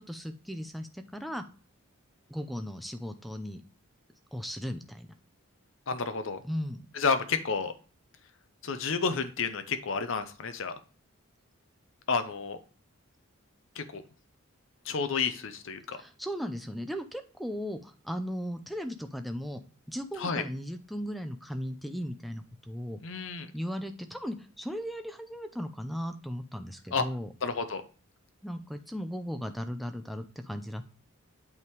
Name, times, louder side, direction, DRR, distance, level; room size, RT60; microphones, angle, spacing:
voice 1, 0.0-1.4 2.3-3.6 4.3-5.1 6.4-6.8 15.9-19.6 19.9-23.0 23.5-27.3 28.4-30.9, equal, ahead, 7 dB, 0.5 m, -37 dB
voice 2, 5.9-6.4 6.9-7.7 8.6-10.8 12.1-12.6 13.8-14.0 14.9-16.0 20.2-20.4 23.0-23.5 26.9-27.0 27.4-27.8, left 5 dB, 60° left, 9 dB, 0.6 m, -30 dB
8.3 x 3.6 x 4.6 m, 0.37 s
head